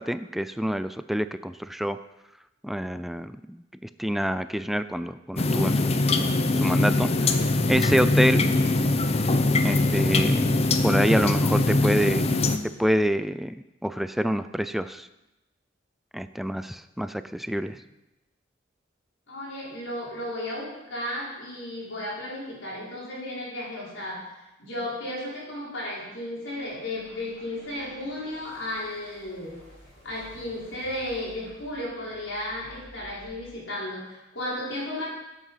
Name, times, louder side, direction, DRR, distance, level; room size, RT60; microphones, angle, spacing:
voice 1, 0.0-2.0 2.6-5.9 6.5-7.4 7.7-8.5 9.6-10.5 10.8-12.3 12.8-15.1 16.1-17.8, equal, ahead, 12 dB, 0.3 m, -27 dB
sound 1, 5.4-12.6, left 2 dB, 35° left, 0.8 m, -22 dB
voice 2, 19.3-24.3 24.6-29.6 30.0-35.1, left 1 dB, 80° left, -5 dB, 5.1 m, -34 dB
sound 2, 26.3-33.2, equal, 55° left, 6.1 m, -52 dB
15.5 x 8.2 x 5.7 m, 0.98 s
head